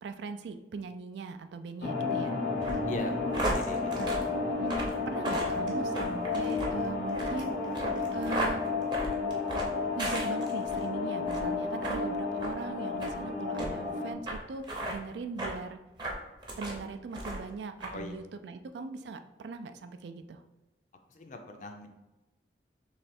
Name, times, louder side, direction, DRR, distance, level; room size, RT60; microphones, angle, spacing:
voice 1, 0.0-2.4 4.0-4.1 4.5-4.8 5.1-7.6 8.1-8.7 10.0-15.8 16.6-20.4, right 4 dB, 80° right, 9 dB, 0.3 m, -40 dB
sound 1, 1.8-14.1, left 4 dB, 80° left, 0.8 m, -32 dB
sound 2, 2.6-10.8 11.2-11.5 11.8-12.0 12.4-12.5 13.0-13.2 13.6-13.7 14.3-14.4 14.6-15.0 15.4-15.6 16.0-16.8 17.1-17.5 17.8-17.9, right 1 dB, 25° right, 0.7 m, -35 dB
voice 2, 2.9-4.2 17.9-18.1 21.1-21.9, left 2 dB, 45° left, 5 dB, 0.5 m, -40 dB
3.3 x 3.2 x 4.2 m, 1.0 s
head